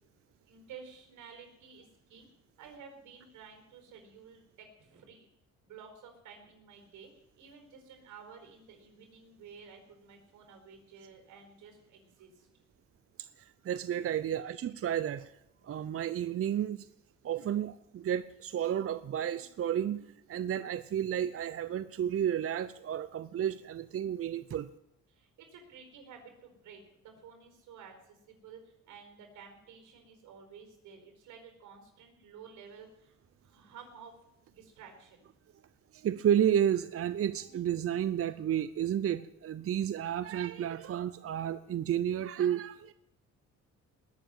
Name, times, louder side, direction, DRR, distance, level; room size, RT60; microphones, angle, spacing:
voice 1, 0.5-2.3 2.6-5.3 5.6-12.5 25.1-33.1 33.4-34.1 34.5-35.2, right 6 dB, 85° right, 4 dB, 4.6 m, -52 dB
voice 2, 13.2-15.3 15.6-16.9 17.2-24.7 35.9-42.9, right 10 dB, 50° right, 13 dB, 0.7 m, -32 dB
20.0 x 7.1 x 9.2 m, 0.82 s
cardioid pair, 90°, 30 cm